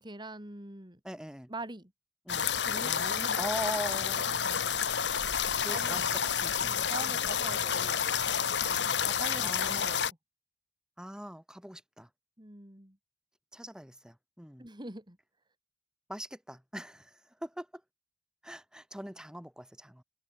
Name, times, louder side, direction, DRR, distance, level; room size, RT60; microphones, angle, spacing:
voice 1, 0.0-1.0 1.5-1.9 2.7-3.4 5.7-6.1 6.6-8.3 8.6-10.0 12.4-13.0 14.6-15.2, right 2 dB, 25° right, 3.6 m, -44 dB
voice 2, 1.0-1.5 2.3-2.5 2.8-4.8 5.6-7.5 8.9-10.0 11.0-12.1 13.5-14.7 16.1-17.8 18.4-20.0, equal, 5° right, 2.3 m, -42 dB
sound 1, 2.3-10.1, left 7 dB, 80° left, 1.6 m, -30 dB
head